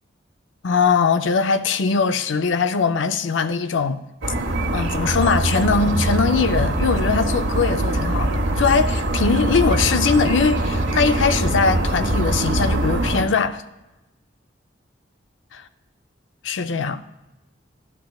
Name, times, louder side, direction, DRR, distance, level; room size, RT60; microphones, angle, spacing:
voice 1, 0.6-4.0 4.7-13.6 15.5-15.6 16.4-17.0, left 5 dB, 80° left, 0.5 m, -21 dB
sound 1, 4.2-13.2, right 1 dB, 80° right, 1.1 m, -22 dB
13.0 x 11.5 x 2.3 m
head